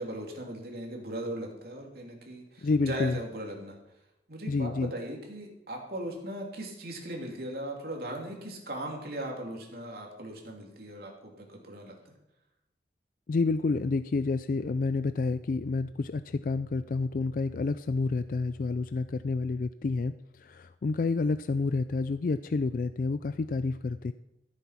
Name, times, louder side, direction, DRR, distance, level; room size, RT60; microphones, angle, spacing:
voice 1, 0.0-3.8 4.3-12.1, right 1 dB, 60° right, 0 dB, 3.0 m, -38 dB
voice 2, 2.6-3.2 4.5-4.9 13.3-24.1, left 3 dB, 50° left, 12 dB, 0.4 m, -29 dB
14.5 x 8.2 x 5.8 m, 0.91 s
head